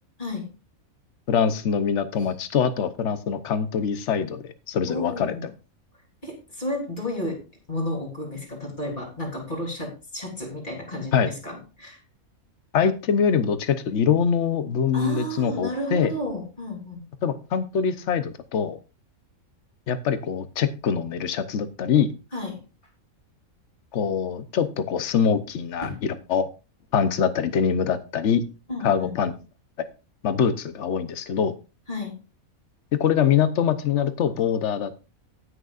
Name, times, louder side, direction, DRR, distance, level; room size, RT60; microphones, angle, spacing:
voice 1, 0.2-0.5 2.2-2.3 4.9-5.5 6.2-7.4 7.7-12.0 14.9-17.1 22.3-22.6 25.8-26.0 28.7-29.1 31.9-32.2, left 1 dB, 35° left, -1 dB, 3.5 m, -32 dB
voice 2, 1.3-5.5 11.1-11.3 12.7-16.1 17.2-18.8 19.9-22.1 23.9-26.5 26.9-28.4 28.8-29.3 30.2-31.5 33.0-35.0, left 7 dB, 60° left, 12 dB, 1.1 m, -24 dB
18.0 x 6.5 x 2.5 m, 0.31 s
omnidirectional pair, 1.5 m